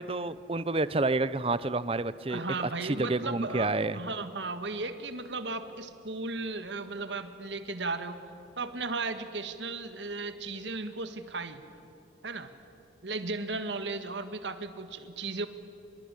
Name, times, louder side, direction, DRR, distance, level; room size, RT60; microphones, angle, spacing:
voice 1, 0.0-2.4 2.8-4.0, right 2 dB, 30° right, 16 dB, 0.7 m, -29 dB
voice 2, 2.3-8.2 8.6-11.6 12.2-12.5 13.0-15.5, right 3 dB, 80° right, 9 dB, 1.7 m, -35 dB
25.0 x 22.0 x 9.9 m, 3.0 s
head